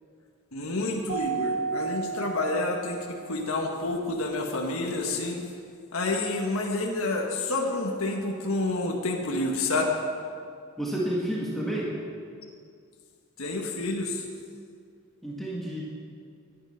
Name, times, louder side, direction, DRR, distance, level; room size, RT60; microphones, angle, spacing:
voice 1, 0.5-5.4 5.9-9.9 13.4-14.2, left 2 dB, 85° left, 1 dB, 1.5 m, -29 dB
Keyboard (musical), 1.1-3.4, right 6 dB, 50° right, 2.6 m, -33 dB
voice 2, 10.8-11.9 15.2-15.8, right 1 dB, ahead, -5 dB, 1.8 m, -30 dB
13.0 x 10.5 x 5.8 m, 2.2 s
head